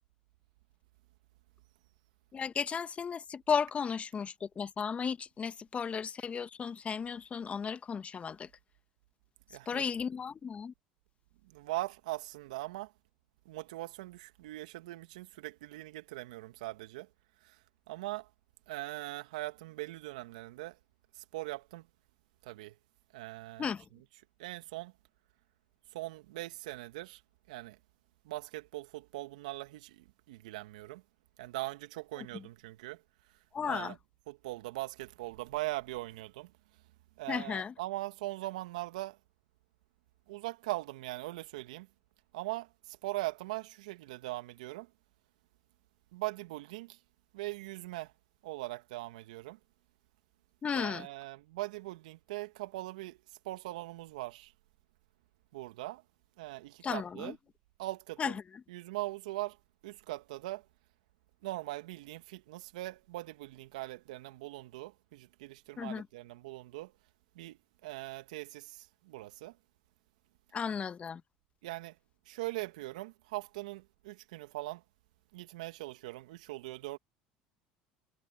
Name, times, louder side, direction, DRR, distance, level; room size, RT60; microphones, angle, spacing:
voice 1, 2.3-8.5 9.7-10.7 23.6-23.8 32.2-32.3 33.5-33.9 37.3-37.7 50.6-51.1 56.8-57.4 58.2-58.3 65.8-66.1 70.5-71.2, left 6 dB, 30° left, 1.8 m, -34 dB
voice 2, 9.5-9.9 11.5-12.9 13.5-17.1 17.4-17.6 17.9-18.3 18.7-20.8 21.2-21.8 22.4-22.7 23.1-23.7 24.4-24.9 25.9-27.2 27.5-27.8 28.2-31.0 31.4-33.0 33.7-34.0 34.3-36.5 37.2-39.2 40.3-41.9 42.3-44.9 46.1-47.0 47.3-48.1 48.4-49.6 50.7-53.2 53.4-54.5 55.5-56.0 56.4-57.4 57.8-58.4 58.7-59.6 59.8-60.6 61.4-66.9 67.4-69.5 71.6-72.0 72.3-74.8 75.3-77.0, right 19 dB, 80° right, 2.2 m, -41 dB
hypercardioid pair, 75°, 4 cm